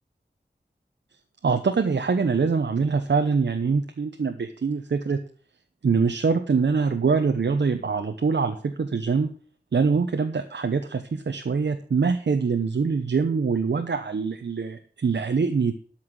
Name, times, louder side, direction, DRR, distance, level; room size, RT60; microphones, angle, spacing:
voice 1, 1.4-5.2 5.8-9.3 9.7-15.7, right 5 dB, 85° right, 6 dB, 1.0 m, -24 dB
13.0 x 5.9 x 7.5 m, 0.43 s
cardioid pair, 45°, 18 cm